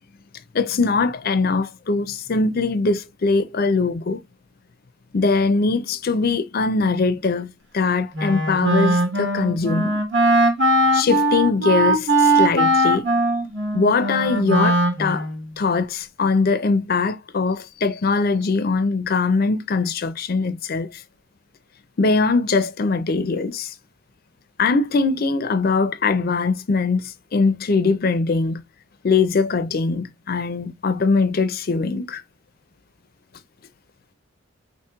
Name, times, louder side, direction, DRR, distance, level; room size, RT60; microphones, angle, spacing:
voice 1, 0.5-4.2 5.1-10.0 10.9-13.1 13.7-15.3 15.6-21.0 22.0-23.7 24.6-28.6 29.0-32.2, left 4 dB, 45° left, 0.4 m, -21 dB
Wind instrument woodwind instrument, 8.1-15.5, right 1 dB, 55° right, 1.1 m, -20 dB
4.4 x 3.0 x 2.2 m
head